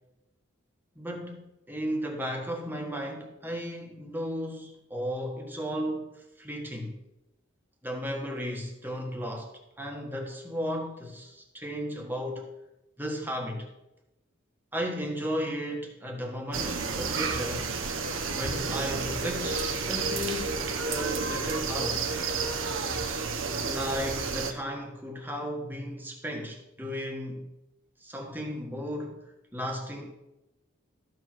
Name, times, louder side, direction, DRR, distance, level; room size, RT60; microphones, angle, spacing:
voice 1, 0.9-7.0 7.8-12.5 13.0-13.7 14.7-17.7 18.3-22.1 23.6-27.5 28.0-30.1, equal, 10° right, 1.4 m, -35 dB
sound 1, 16.5-24.5, right 4 dB, 80° right, 1.0 m, -31 dB
14.0 x 4.7 x 6.0 m
head